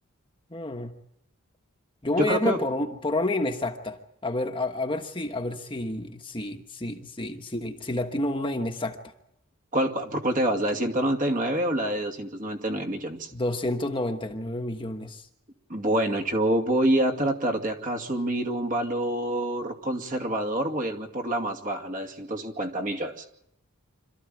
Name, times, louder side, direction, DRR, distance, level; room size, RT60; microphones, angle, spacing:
voice 1, 0.5-0.9 2.0-9.0 13.3-15.3, left 1 dB, 25° left, 4 dB, 1.3 m, -29 dB
voice 2, 2.2-2.6 9.7-13.3 15.7-23.3, right 1 dB, 40° right, 3 dB, 2.4 m, -27 dB
26.5 x 14.0 x 9.2 m, 0.80 s
head